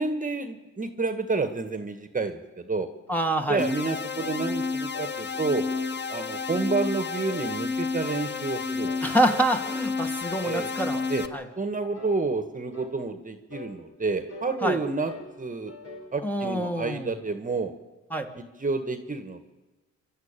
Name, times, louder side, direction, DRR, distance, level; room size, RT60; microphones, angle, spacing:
voice 1, 0.0-2.9 3.5-5.6 6.1-8.9 10.4-10.8 11.1-11.2 11.6-15.1 15.4-15.7 16.1-17.7 18.3-19.5, right 3 dB, 25° right, 8 dB, 1.7 m, -29 dB
voice 2, 3.1-3.6 9.0-11.0 11.3-11.5 14.6-14.8 16.2-17.1 18.1-18.3, right 1 dB, 5° left, 4 dB, 1.9 m, -26 dB
sound 1, 3.6-11.3, left 4 dB, 35° left, 1.3 m, -31 dB
sound 2, 4.1-4.4 4.9-5.2 5.7-6.0 6.5-6.7 7.3-7.5 8.0-8.3 8.8-9.1 9.6-9.8 10.4-10.6 11.1-11.4 11.9-12.2 12.7-13.0 13.5-13.7 14.3-14.5 15.1-15.3 15.7-16.1, left 2 dB, 55° left, 5.4 m, -42 dB
27.0 x 12.5 x 9.0 m, 1.2 s
cardioid pair, 90°, 30 cm